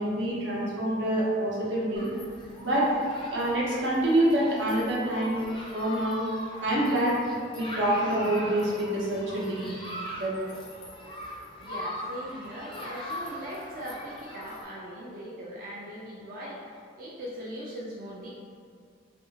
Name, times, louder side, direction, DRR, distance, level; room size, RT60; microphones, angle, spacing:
voice 1, 0.0-2.1 2.6-2.9 3.3-5.4 5.7-6.2 6.6-7.2 7.5-9.7 10.2-10.3, right 1 dB, 85° right, -6 dB, 0.8 m, -26 dB
Human group actions, 2.0-14.6, equal, 25° left, 0.4 m, -41 dB
voice 2, 11.6-18.3, equal, 50° right, -6 dB, 0.3 m, -40 dB
2.7 x 2.5 x 2.7 m, 2.2 s
head